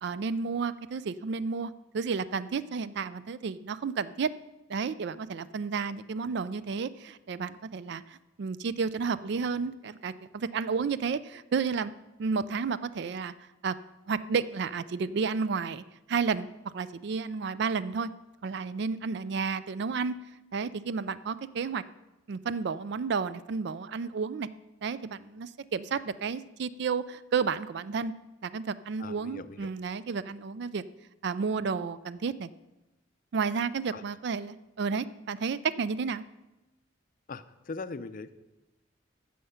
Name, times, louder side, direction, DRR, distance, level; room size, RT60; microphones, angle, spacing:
voice 1, 0.0-4.3 4.7-11.9 12.2-13.3 13.6-13.7 14.1-18.1 18.4-20.2 20.5-21.8 22.3-24.5 24.8-28.1 28.4-30.8 31.2-32.5 33.3-36.2, right 5 dB, 60° right, 15 dB, 0.4 m, -31 dB
voice 2, 29.0-29.7 33.9-34.0 37.3-38.3, left 3 dB, 45° left, 13 dB, 0.5 m, -40 dB
15.0 x 5.7 x 5.6 m, 1.0 s
head